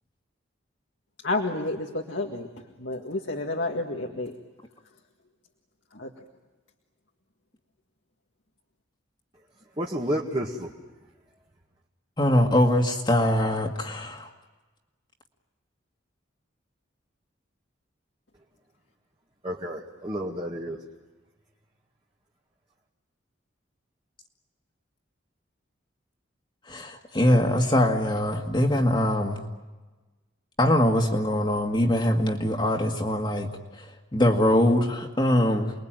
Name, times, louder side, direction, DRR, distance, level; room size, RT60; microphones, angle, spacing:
voice 1, 1.2-2.5 2.8-4.3 5.9-6.1, left 2 dB, 65° left, 2 dB, 1.9 m, -30 dB
voice 2, 9.8-10.7 19.4-20.8, equal, 25° right, -2 dB, 2.0 m, -30 dB
voice 3, 12.2-14.3 26.7-29.4 30.6-33.9 34.1-35.7, left 1 dB, 25° left, 2 dB, 2.0 m, -23 dB
29.0 x 21.5 x 9.1 m, 1.2 s
head